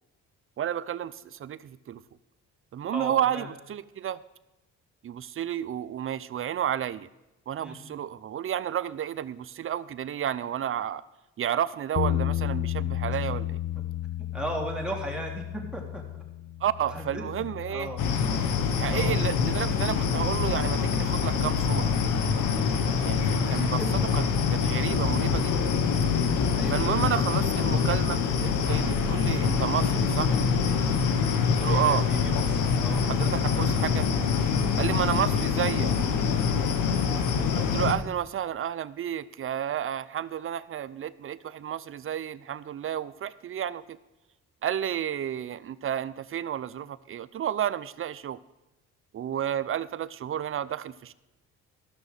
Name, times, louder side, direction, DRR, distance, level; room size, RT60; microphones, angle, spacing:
voice 1, 0.6-2.0 2.7-4.2 5.0-7.1 7.5-11.0 11.4-13.6 16.6-17.9 18.8-21.9 22.7-23.8 24.1-24.2 24.5-25.5 26.7-30.4 31.4-32.1 33.0-34.1 34.8-35.9 37.5-44.0 44.6-48.4 49.1-51.1, right 10 dB, 45° right, 15 dB, 0.6 m, -31 dB
voice 2, 2.9-3.5 7.6-7.8 13.1-13.4 14.3-16.0 16.9-17.2 17.7-18.0 18.9-19.1 23.5-23.9 26.5-27.1 31.6-33.0, right 1 dB, 5° right, -1 dB, 3.0 m, -37 dB
sound 1, 12.0-18.2, left 13 dB, 45° left, 0.4 m, -32 dB
sound 2, 18.0-37.9, left 6 dB, 85° left, 1.3 m, -25 dB
13.5 x 6.2 x 6.5 m, 1.0 s
cardioid pair, 90°, 30 cm